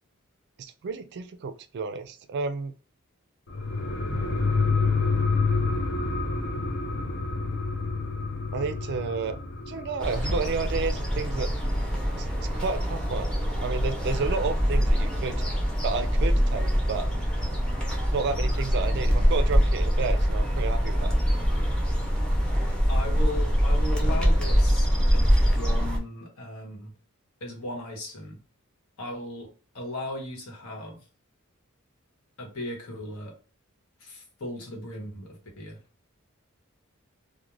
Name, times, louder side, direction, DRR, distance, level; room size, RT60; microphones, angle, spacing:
voice 1, 0.6-2.7 4.0-4.4 8.5-9.4 9.7-11.5 12.2-12.3 12.5-13.3 13.6-15.4 15.8-17.1 18.1-21.2, right 4 dB, 55° right, 10 dB, 0.3 m, -31 dB
sound 1, 3.5-12.6 12.9-13.0, left 4 dB, 55° left, 0.5 m, -28 dB
sound 2, 10.0-26.0, equal, 5° left, 0.6 m, -24 dB
voice 2, 22.9-26.9 27.4-28.4 29.0-31.0 32.4-33.3 34.0-35.8, left 1 dB, 85° left, 0 dB, 1.1 m, -37 dB
2.4 x 2.1 x 3.0 m, 0.37 s
head